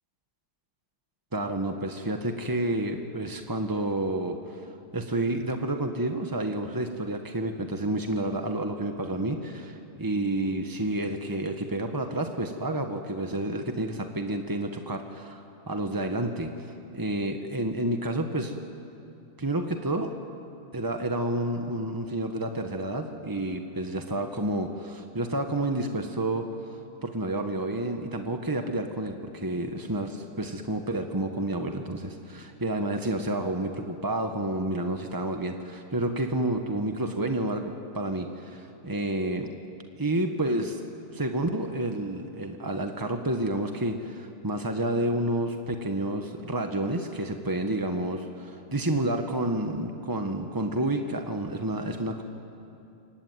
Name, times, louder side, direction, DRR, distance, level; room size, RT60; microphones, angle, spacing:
voice 1, 1.3-16.5 16.9-18.5 19.4-20.1 20.7-26.4 27.0-39.5 39.9-40.8 41.1-52.2, right 1 dB, 20° right, 5 dB, 0.5 m, -30 dB
26.5 x 23.5 x 9.4 m, 2.8 s
omnidirectional pair, 2.3 m